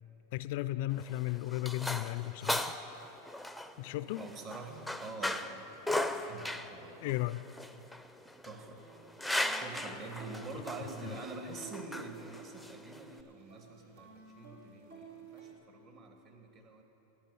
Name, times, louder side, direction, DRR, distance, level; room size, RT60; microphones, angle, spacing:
voice 1, 0.3-2.6 3.8-4.3 7.0-7.4 11.0-11.1, left 17 dB, 60° left, 15 dB, 0.4 m, -35 dB
sound 1, 0.9-13.2, left 1 dB, ahead, 0.6 m, -38 dB
voice 2, 4.2-5.7 6.3-7.2 8.4-8.8 9.6-16.8, right 3 dB, 45° right, 3 dB, 2.1 m, -46 dB
sound 2, 4.4-5.4 5.7-6.0 6.3-7.9 8.2-15.5, right 5 dB, 85° right, 2.4 m, -53 dB
13.5 x 9.4 x 7.0 m, 3.0 s
hypercardioid pair, 120°, 0 cm